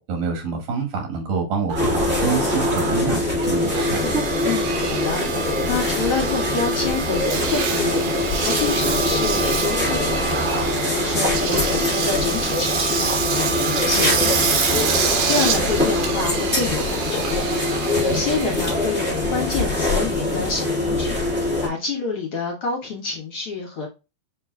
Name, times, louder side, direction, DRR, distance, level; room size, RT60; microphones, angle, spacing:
voice 1, 0.0-4.1 17.9-18.2, right 4 dB, 80° right, 2 dB, 3.3 m, -27 dB
sound 1, 1.7-21.7, left 2 dB, 10° right, 0.7 m, -23 dB
Engine, 1.7-20.1, right 5 dB, 65° right, 2.1 m, -26 dB
voice 2, 4.4-10.3 10.8-13.5 13.8-14.9 15.2-17.4 18.0-21.2 21.6-23.9, left 4 dB, 55° left, -1 dB, 1.8 m, -28 dB
6.8 x 3.1 x 2.3 m, 0.27 s
omnidirectional pair, 3.7 m